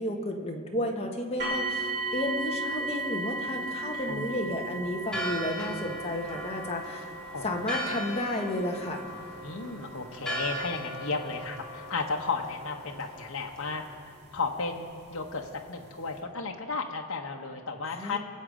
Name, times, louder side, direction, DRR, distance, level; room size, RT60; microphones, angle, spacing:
voice 1, 0.0-7.1 7.4-9.0 17.9-18.2, left 1 dB, 30° left, 1 dB, 1.4 m, -32 dB
sound 1, 1.4-14.3 15.1-15.2 15.8-15.9, right 2 dB, 50° right, 2.3 m, -37 dB
voice 2, 3.9-4.3 7.3-7.4 9.4-13.8 14.3-18.2, left 4 dB, 75° left, 1 dB, 1.1 m, -34 dB
Church bell, 5.0-13.9, right 1 dB, 5° left, 2.2 m, -39 dB
24.0 x 8.2 x 5.0 m, 2.4 s
head